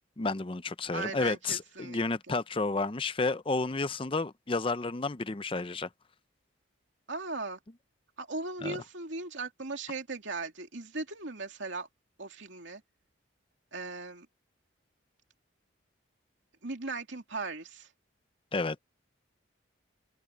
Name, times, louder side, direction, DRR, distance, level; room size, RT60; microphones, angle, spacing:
voice 1, 0.2-5.9 8.6-8.8 18.5-18.8, left 3 dB, 25° left, 0.6 m, -31 dB
voice 2, 0.9-2.0 2.3-2.4 7.1-7.6 8.2-11.9 12.2-12.8 13.7-14.3 16.6-17.9, right 3 dB, 70° right, 2.7 m, -38 dB
head